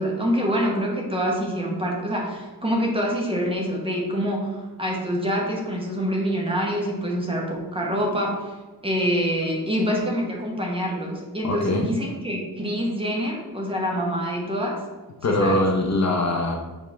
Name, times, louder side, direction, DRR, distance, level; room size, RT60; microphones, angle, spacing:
voice 1, 0.0-8.5 8.8-14.7 15.4-15.6, equal, 15° right, -2 dB, 1.2 m, -26 dB
voice 2, 11.4-11.9 15.2-16.6, left 1 dB, 45° left, 1 dB, 0.8 m, -22 dB
7.2 x 4.4 x 3.4 m, 1.3 s
wide cardioid pair, 145°, 39 cm